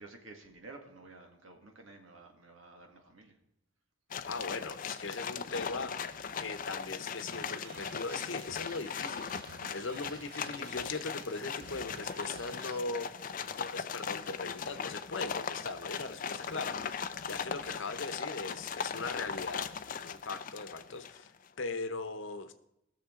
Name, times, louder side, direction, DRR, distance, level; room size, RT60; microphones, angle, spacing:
voice 1, 0.0-3.4, right 3 dB, 80° right, 2 dB, 1.8 m, -52 dB
sound 1, 4.1-21.3, left 6 dB, 40° left, 0.4 m, -39 dB
voice 2, 4.3-13.1 13.4-19.7 20.0-22.5, left 3 dB, 70° left, 9 dB, 0.9 m, -40 dB
sound 2, 7.3-12.8, right 5 dB, 50° right, 0.5 m, -52 dB
19.0 x 6.7 x 3.7 m, 0.82 s
head